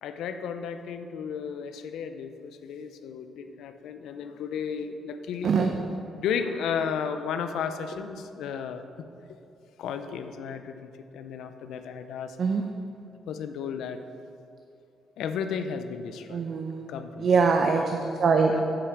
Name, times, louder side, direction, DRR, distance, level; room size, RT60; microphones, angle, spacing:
voice 1, 0.0-5.5 6.2-8.8 9.8-12.7 13.3-14.0 15.2-16.4 16.9-17.3 18.4-18.6, left 7 dB, 80° left, 8 dB, 0.5 m, -34 dB
voice 2, 16.3-16.9 17.2-18.6, right 5 dB, 55° right, 4 dB, 0.6 m, -23 dB
8.6 x 5.0 x 7.2 m, 2.6 s
cardioid pair, 90°, 0 cm